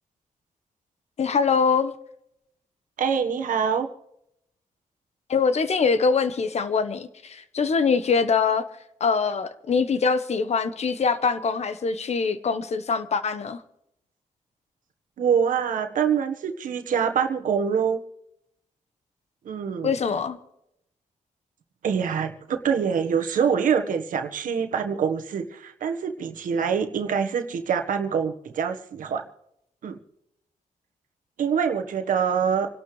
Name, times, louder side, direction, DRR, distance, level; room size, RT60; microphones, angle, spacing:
voice 1, 1.2-1.9 5.3-8.6 9.0-13.6 19.8-20.4, left 5 dB, 55° left, 1.1 m, -23 dB
voice 2, 3.0-3.9 15.2-18.0 19.4-19.9 21.8-29.2 29.8-30.0 31.4-32.7, right 7 dB, 85° right, 1.4 m, -25 dB
28.0 x 12.0 x 3.2 m
cardioid pair, 95°, 13 cm